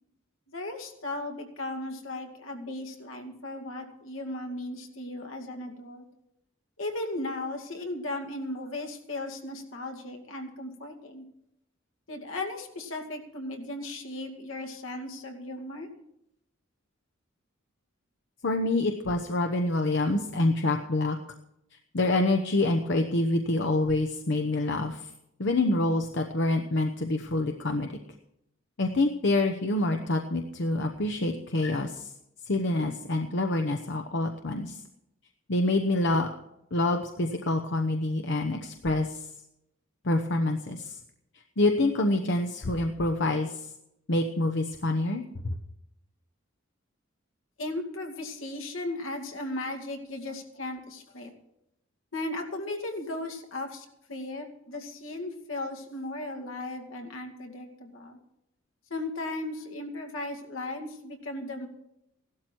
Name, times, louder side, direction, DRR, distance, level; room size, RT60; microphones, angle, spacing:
voice 1, 0.5-6.0 6.8-11.2 12.1-15.9 47.6-51.3 52.1-58.2 58.9-61.7, left 2 dB, 80° left, 3 dB, 2.4 m, -36 dB
voice 2, 18.4-21.2 21.9-25.1 25.4-27.9 28.8-32.1 32.5-34.8 35.5-36.3 36.7-39.3 40.0-41.0 41.6-43.7 44.1-45.2, left 2 dB, 60° left, 5 dB, 1.0 m, -26 dB
16.5 x 12.5 x 4.6 m, 0.81 s
head